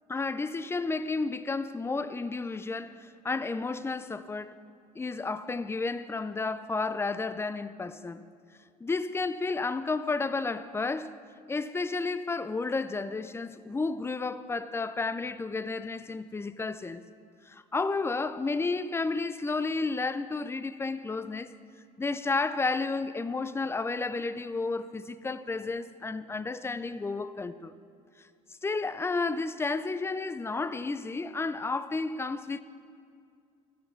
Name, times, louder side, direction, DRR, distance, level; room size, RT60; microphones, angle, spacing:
voice 1, 0.1-4.5 5.0-8.2 8.8-11.2 11.5-17.0 17.5-21.5 22.0-27.7 28.6-32.6, left 3 dB, 15° left, 0.4 m, -32 dB
13.5 x 5.4 x 5.9 m
supercardioid pair, 85°, 18 cm